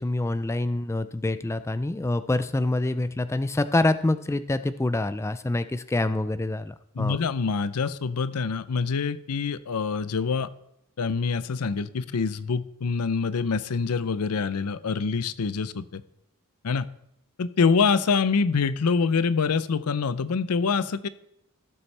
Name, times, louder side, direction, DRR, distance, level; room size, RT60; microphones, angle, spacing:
voice 1, 0.0-7.2, left 2 dB, 10° left, 12 dB, 0.3 m, -26 dB
voice 2, 6.9-10.5 11.0-16.0 16.6-16.9 17.4-21.1, left 5 dB, 85° left, 15 dB, 0.6 m, -25 dB
16.5 x 7.2 x 3.3 m, 0.76 s
head